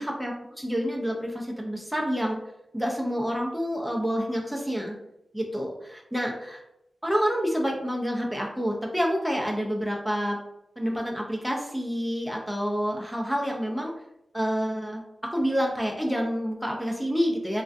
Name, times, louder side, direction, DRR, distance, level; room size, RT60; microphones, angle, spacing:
voice 1, 0.0-2.4 2.7-5.0 5.3-6.6 7.0-10.4 10.8-13.9 14.3-15.0 15.3-17.6, equal, ahead, -1 dB, 0.4 m, -28 dB
2.3 x 2.2 x 2.5 m, 0.85 s
wide cardioid pair, 95°, 0 cm